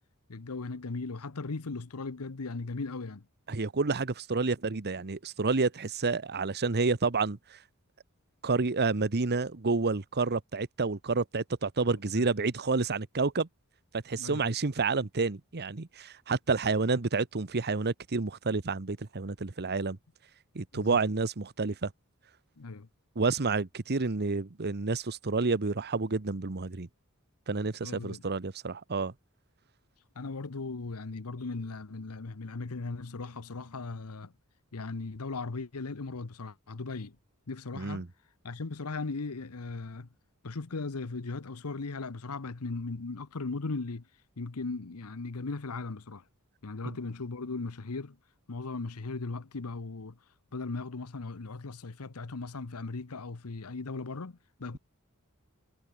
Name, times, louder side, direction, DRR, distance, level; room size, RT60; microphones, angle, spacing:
voice 1, 0.3-3.2 12.2-12.3 14.2-14.5 20.7-21.0 22.6-22.9 27.8-28.2 30.1-34.3 34.7-37.2 37.5-38.1 38.4-40.1 40.4-44.1 44.4-46.2 46.6-48.2 48.5-50.2 50.5-54.8, left 3 dB, 90° left, 1.0 m, -38 dB
voice 2, 3.5-7.6 8.4-13.5 13.9-20.0 20.5-21.9 23.2-26.9 27.5-29.1 37.7-38.1 46.9-47.0, right 4 dB, 50° right, 1.0 m, -29 dB
head